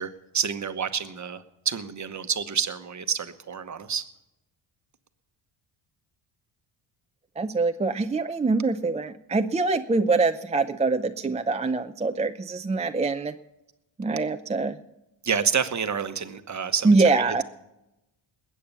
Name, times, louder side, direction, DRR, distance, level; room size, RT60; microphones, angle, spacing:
voice 1, 0.0-4.1 15.2-17.4, right 6 dB, 35° right, 10 dB, 1.1 m, -29 dB
voice 2, 7.4-13.3 14.0-14.8 16.8-17.4, right 3 dB, 15° right, 7 dB, 0.4 m, -24 dB
20.5 x 8.6 x 6.8 m, 0.94 s
cardioid pair, 100°, 49 cm